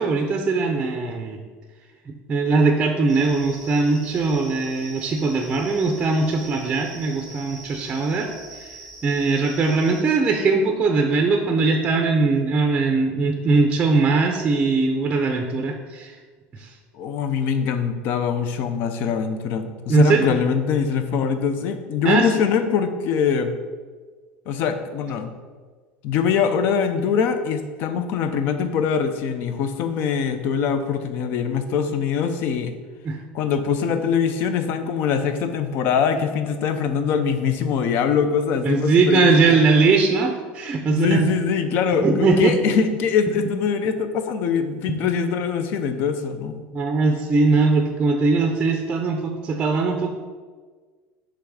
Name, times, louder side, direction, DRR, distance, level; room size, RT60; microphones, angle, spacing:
voice 1, 0.0-1.4 2.1-8.7 9.0-16.1 16.6-16.7 19.9-20.3 22.0-22.3 33.0-33.2 38.6-41.3 42.0-42.5 44.9-45.0 46.7-50.1, right 3 dB, 20° right, 3 dB, 0.5 m, -20 dB
sound 1, 3.1-10.0, right 2 dB, 5° left, 0.9 m, -42 dB
voice 2, 16.9-23.5 24.5-25.3 26.0-32.7 33.3-39.6 40.9-46.6, left 6 dB, 50° left, 9 dB, 0.5 m, -23 dB
5.9 x 3.5 x 4.8 m, 1.5 s
cardioid pair, 150°, 4 cm